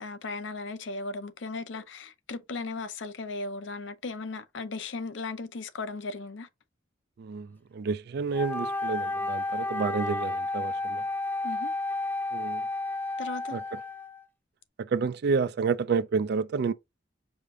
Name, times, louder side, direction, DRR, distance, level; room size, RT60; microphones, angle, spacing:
voice 1, 0.0-6.5 11.4-11.7 13.2-13.6, left 3 dB, 65° left, 0.6 m, -36 dB
voice 2, 7.2-11.0 12.3-12.6 13.5-13.8 14.8-16.7, right 5 dB, 55° right, 0.3 m, -29 dB
Wind instrument woodwind instrument, 8.3-14.2, left 2 dB, 10° left, 0.5 m, -31 dB
4.9 x 2.5 x 3.7 m
head